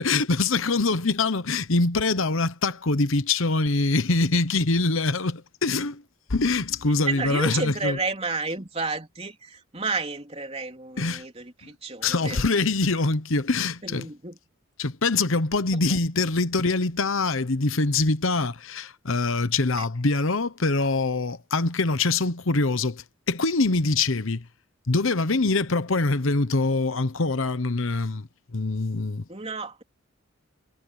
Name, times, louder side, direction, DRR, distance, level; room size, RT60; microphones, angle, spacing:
voice 1, 0.0-6.0 6.3-8.0 11.0-11.2 12.0-14.1 14.8-24.5 24.9-29.2, left 3 dB, 70° left, 1.0 m, -24 dB
voice 2, 7.0-12.4 13.8-14.4 15.7-16.0 19.8-19.9 29.3-29.8, right 4 dB, 30° right, 3.5 m, -31 dB
head